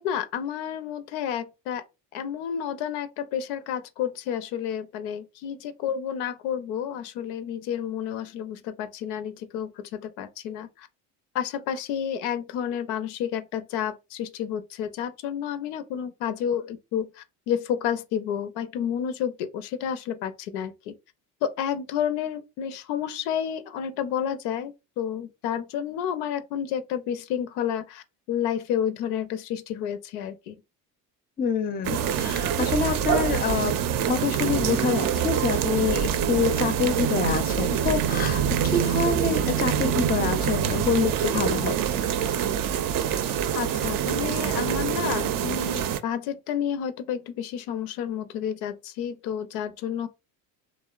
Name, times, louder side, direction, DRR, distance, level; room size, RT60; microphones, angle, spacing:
voice 1, 0.0-1.8 2.1-10.9 11.3-20.9 21.4-30.6 43.5-50.1, left 9 dB, 80° left, 0.6 m, -30 dB
voice 2, 31.4-33.8 34.1-41.7, left 5 dB, 20° left, 0.4 m, -26 dB
sound 1, 31.8-46.0, right 9 dB, 50° right, 0.5 m, -25 dB
2.7 x 2.1 x 2.3 m
hypercardioid pair, 75°, 45 cm